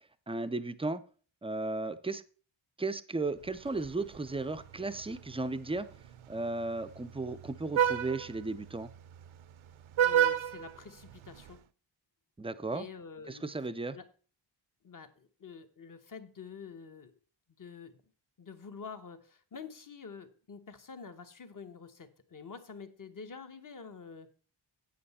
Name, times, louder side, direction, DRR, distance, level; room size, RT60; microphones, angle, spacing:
voice 1, 0.3-1.0 1.4-2.2 2.8-5.9 6.3-8.9 12.4-12.9 13.3-14.0, right 3 dB, 15° right, 12 dB, 0.4 m, -35 dB
Vehicle horn car horn honking, 3.4-11.6, right 9 dB, 75° right, 0.6 m, -34 dB
voice 2, 10.0-11.6 12.7-13.5 13.9-14.1 14.8-17.1 17.6-18.0 18.4-24.3, left 5 dB, 40° left, 9 dB, 1.0 m, -47 dB
8.8 x 7.7 x 4.1 m, 0.39 s
wide cardioid pair, 145°, 48 cm